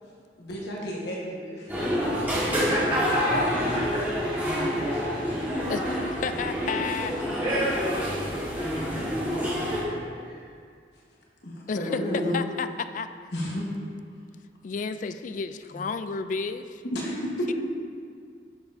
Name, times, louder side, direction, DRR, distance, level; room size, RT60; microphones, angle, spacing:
voice 1, 0.4-2.3 2.7-2.8 4.5-5.3 11.4-12.4 13.3-13.6 15.7-15.8 16.8-17.5, equal, 70° left, -3 dB, 1.3 m, -32 dB
sound 1, 1.7-9.8, equal, 10° right, 1.5 m, -28 dB
voice 2, 2.5-3.4 3.7-4.2 6.6-6.7 7.4-10.0 10.2-10.3, right 1 dB, 30° right, -8 dB, 1.2 m, -31 dB
voice 3, 5.7-7.2 11.7-12.0 12.3-12.7 12.9-13.1 14.6-16.8 17.5-17.6, left 5 dB, 45° left, 10 dB, 0.3 m, -32 dB
10.5 x 6.9 x 2.7 m, 2.1 s
head